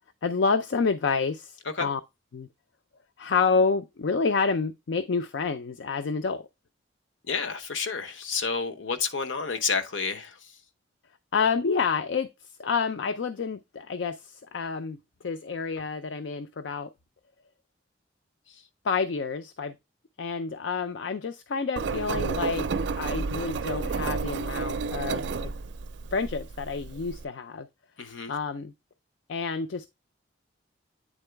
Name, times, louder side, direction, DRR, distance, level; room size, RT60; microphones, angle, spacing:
voice 1, 0.2-2.0 2.3-2.5 3.2-6.5 11.3-15.0 15.2-16.9 18.8-19.8 20.2-22.7 23.0-25.5 26.1-27.7 28.3-28.7 29.3-29.9, left 5 dB, 70° left, 0.5 m, -28 dB
voice 2, 7.3-10.5 18.5-18.6 28.0-28.3, left 5 dB, 90° left, 0.9 m, -30 dB
Engine, 21.8-27.2, right 4 dB, 65° right, 0.4 m, -31 dB
9.0 x 3.8 x 3.3 m
head